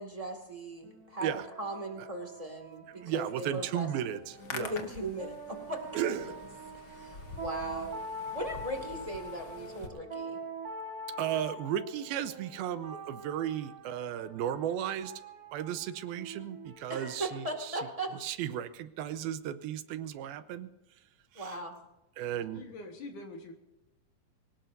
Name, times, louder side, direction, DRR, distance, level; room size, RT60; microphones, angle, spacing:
voice 1, 0.0-1.3 1.6-3.9 4.5-6.1 6.9-7.9 8.3-10.4 16.9-18.1 21.3-21.7, right 1 dB, 15° right, 3 dB, 1.2 m, -38 dB
sound 1, 0.8-18.3, right 2 dB, 55° right, 1.0 m, -45 dB
voice 2, 2.9-4.8 5.9-6.3 11.2-15.1 15.5-17.9 18.1-20.7 21.3-21.6 22.2-22.7, right 10 dB, 85° right, 12 dB, 2.7 m, -35 dB
Hands, 4.2-9.9, left 4 dB, 80° left, 0.9 m, -46 dB
voice 3, 22.3-23.5, left 2 dB, 60° left, 3 dB, 2.7 m, -45 dB
24.0 x 18.5 x 2.7 m, 0.96 s
omnidirectional pair, 4.4 m